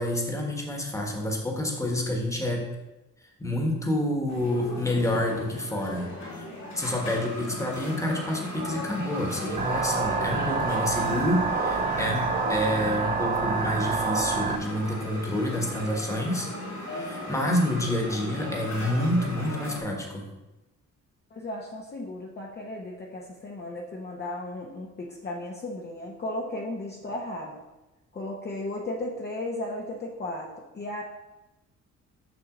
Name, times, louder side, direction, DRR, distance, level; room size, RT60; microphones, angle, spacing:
voice 1, 0.0-2.6 3.4-6.1 6.4-6.5 6.7-16.5 16.8-20.2, left 1 dB, 10° left, 1 dB, 1.4 m, -28 dB
sound 1, 4.3-19.8, left 1 dB, 70° left, 2.5 m, -37 dB
sound 2, 9.6-14.6, right 5 dB, 25° right, 0.4 m, -27 dB
voice 2, 21.3-27.6 28.1-31.0, left 1 dB, 35° left, -2 dB, 0.9 m, -35 dB
6.1 x 5.8 x 3.8 m, 1.0 s
cardioid pair, 90°, 30 cm